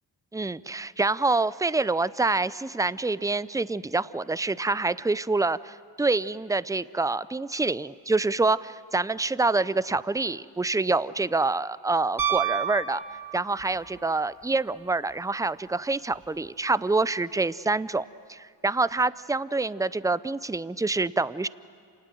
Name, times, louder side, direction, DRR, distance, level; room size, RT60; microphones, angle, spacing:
voice 1, 0.3-13.0 13.3-21.5, right 3 dB, 10° right, 18 dB, 0.5 m, -26 dB
Piano, 12.2-13.8 16.1-16.2, right 9 dB, 45° right, 1.5 m, -29 dB
27.0 x 19.5 x 7.7 m, 2.3 s
cardioid pair, 45°, 46 cm